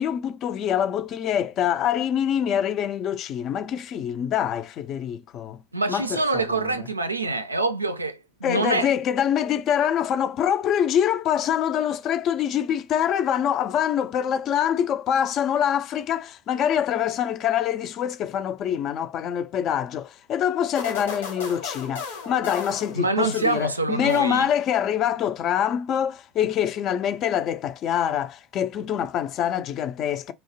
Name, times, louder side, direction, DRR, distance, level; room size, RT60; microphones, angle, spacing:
voice 1, 0.0-5.6 5.9-6.8 8.4-30.3, left 9 dB, 45° left, 0.4 m, -25 dB
voice 2, 5.7-8.9 22.9-24.5, right 3 dB, 90° right, 0.3 m, -25 dB
sound 1, 20.7-23.7 24.1-24.7, left 5 dB, 75° left, 0.9 m, -36 dB
2.8 x 2.0 x 2.9 m
figure-of-eight pair, 75°, 0 cm